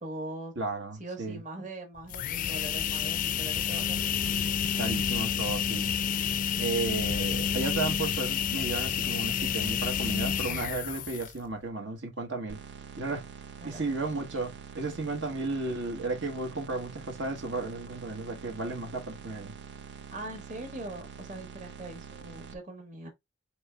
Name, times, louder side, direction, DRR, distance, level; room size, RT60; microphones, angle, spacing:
voice 1, 0.0-0.5 1.0-4.2 13.6-13.9 20.1-23.1, right 1 dB, 40° right, 1.3 m, -41 dB
voice 2, 0.6-1.4 4.8-5.9 6.6-12.6 13.0-13.2 13.6-19.5, right 3 dB, 80° right, 1.4 m, -34 dB
sound 1, 2.0-11.5, left 8 dB, 45° left, 0.3 m, -29 dB
sound 2, 12.5-22.5, right 6 dB, 65° right, 0.6 m, -46 dB
4.4 x 3.2 x 3.4 m
head